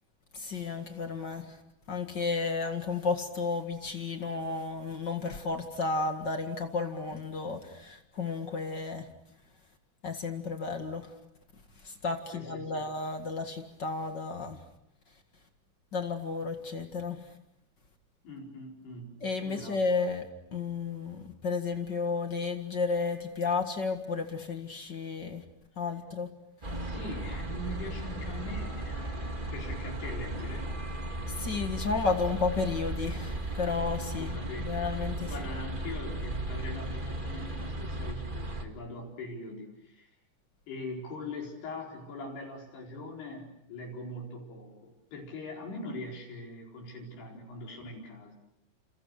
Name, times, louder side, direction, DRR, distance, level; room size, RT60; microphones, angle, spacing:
voice 1, 0.3-1.6 1.9-9.1 10.0-11.2 11.8-14.6 15.9-17.3 19.2-25.4 25.7-26.3 31.3-35.3, left 4 dB, 40° left, 6 dB, 1.7 m, -32 dB
voice 2, 12.3-12.8 18.2-19.2 19.4-19.8 26.7-30.7 34.2-34.9 35.3-40.1 40.7-48.3, left 2 dB, 90° left, -1 dB, 6.6 m, -42 dB
sound 1, 26.6-38.6, right 1 dB, 25° right, 1.2 m, -36 dB
29.5 x 28.5 x 6.6 m, 0.80 s
omnidirectional pair, 4.5 m